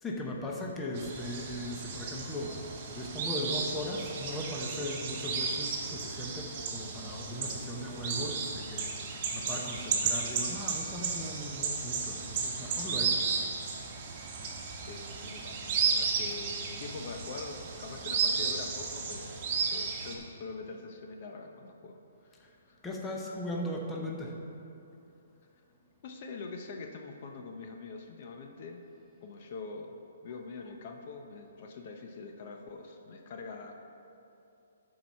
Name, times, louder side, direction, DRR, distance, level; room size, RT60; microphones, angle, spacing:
voice 1, 0.0-13.2 22.4-22.5 22.8-24.3, left 1 dB, 10° left, -1 dB, 0.9 m, -38 dB
sound 1, 1.0-20.2, right 5 dB, 35° right, 1.2 m, -34 dB
voice 2, 14.9-22.8 26.0-28.8 29.2-33.7, left 4 dB, 45° left, 3 dB, 0.7 m, -44 dB
11.5 x 4.7 x 5.6 m, 2.8 s
hypercardioid pair, 160°, 0 cm